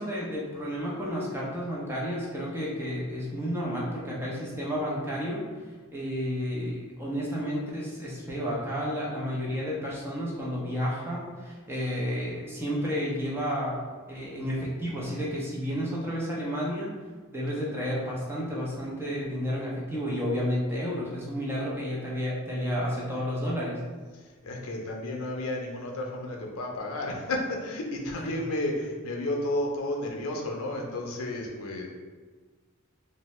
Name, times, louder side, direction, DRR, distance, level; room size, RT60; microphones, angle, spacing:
voice 1, 0.0-5.5 5.9-13.8 14.1-17.0 17.3-23.8, equal, 10° right, -5 dB, 0.5 m, -31 dB
voice 2, 24.1-31.9, left 1 dB, 75° left, 1 dB, 0.5 m, -32 dB
2.6 x 2.1 x 3.0 m, 1.4 s
head